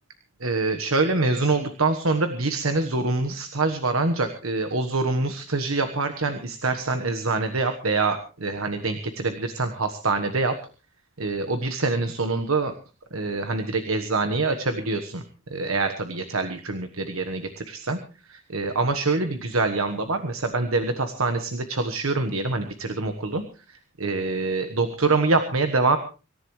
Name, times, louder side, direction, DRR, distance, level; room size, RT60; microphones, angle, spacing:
voice 1, 0.4-10.5 11.2-12.7 13.1-15.2 15.5-18.0 18.3-23.4 23.7-26.0, right 3 dB, 90° right, 7 dB, 1.3 m, -25 dB
25.0 x 14.5 x 3.2 m, 0.34 s
head